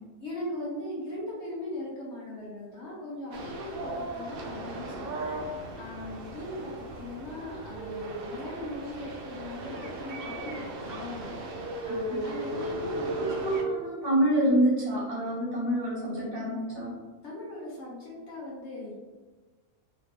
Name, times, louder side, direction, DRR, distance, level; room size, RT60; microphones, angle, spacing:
voice 1, 0.2-13.3 17.2-18.9, left 1 dB, 55° left, -5 dB, 1.0 m, -39 dB
sound 1, 3.3-13.6, right 1 dB, 85° right, 0.5 m, -36 dB
voice 2, 11.9-12.2 13.0-16.9, right 1 dB, 40° right, -7 dB, 1.2 m, -27 dB
3.1 x 3.1 x 2.9 m, 1.3 s
omnidirectional pair, 1.6 m